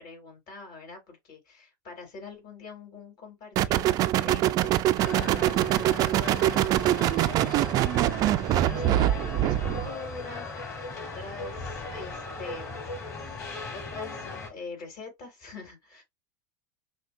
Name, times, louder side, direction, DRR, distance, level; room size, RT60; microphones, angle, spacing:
voice 1, 0.0-12.9 13.7-16.0, left 4 dB, 45° left, 3.0 m, -44 dB
sound 1, 3.6-9.9, right 13 dB, 40° right, 0.4 m, -24 dB
sound 2, 5.0-14.5, left 3 dB, 25° left, 2.3 m, -38 dB
5.7 x 2.3 x 2.5 m
supercardioid pair, 115°, 9 cm